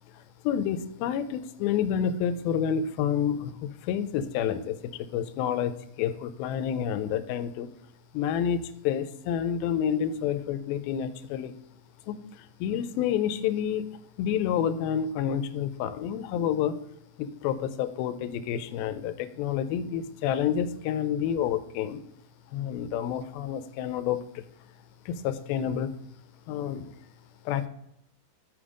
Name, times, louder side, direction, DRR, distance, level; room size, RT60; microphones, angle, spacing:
voice 1, 0.1-7.7 8.1-11.5 12.1-16.8 17.2-22.0 22.5-24.5 25.1-26.0 26.5-26.9 27.5-27.7, left 9 dB, 85° left, 12 dB, 2.5 m, -29 dB
7.0 x 5.9 x 4.9 m, 0.77 s
omnidirectional pair, 4.2 m